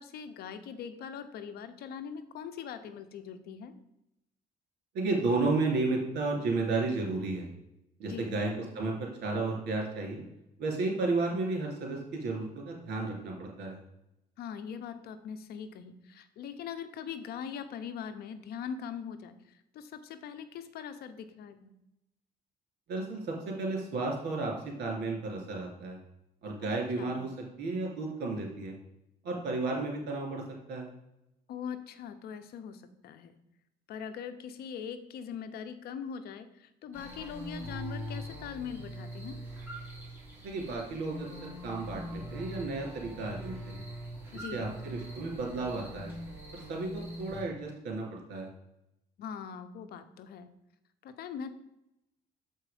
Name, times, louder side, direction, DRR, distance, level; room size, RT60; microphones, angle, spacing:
voice 1, 0.0-3.7 8.1-8.4 14.4-19.4 19.7-21.7 26.6-26.7 27.0-27.2 31.5-33.3 33.9-39.4 44.3-44.7 49.2-50.5 51.0-51.5, left 7 dB, 70° left, 10 dB, 0.8 m, -41 dB
voice 2, 4.9-7.5 8.0-10.2 10.6-13.8 22.9-24.5 24.8-26.0 26.4-28.7 29.2-30.4 30.7-30.9 40.4-43.8 44.5-46.1 46.5-48.5, right 3 dB, 75° right, 0 dB, 2.5 m, -33 dB
sound 1, 36.9-47.4, equal, 10° right, 3.0 m, -42 dB
7.3 x 4.6 x 4.9 m, 0.87 s
cardioid pair, 110°, 17 cm